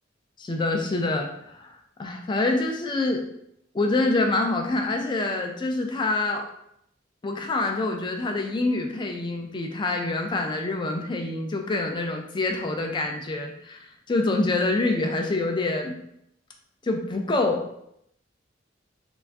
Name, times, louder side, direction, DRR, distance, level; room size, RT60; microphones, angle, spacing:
voice 1, 0.4-1.7 2.0-3.2 3.7-6.4 7.2-16.0 16.8-17.6, left 2 dB, 25° left, 3 dB, 0.3 m, -26 dB
2.4 x 2.3 x 3.4 m, 0.75 s
head